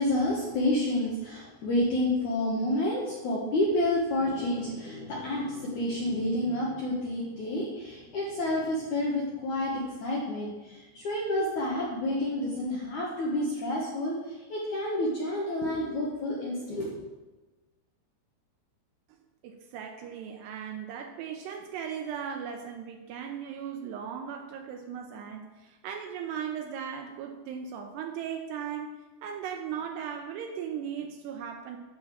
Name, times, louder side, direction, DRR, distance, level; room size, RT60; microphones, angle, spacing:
voice 1, 0.0-16.9, left 1 dB, 65° left, -4 dB, 2.0 m, -29 dB
sound 1, 4.0-13.6, left 2 dB, 30° left, 1.6 m, -49 dB
voice 2, 19.4-31.8, right 8 dB, 80° right, 4 dB, 2.6 m, -37 dB
10.5 x 5.1 x 7.5 m, 1.2 s
omnidirectional pair, 5.3 m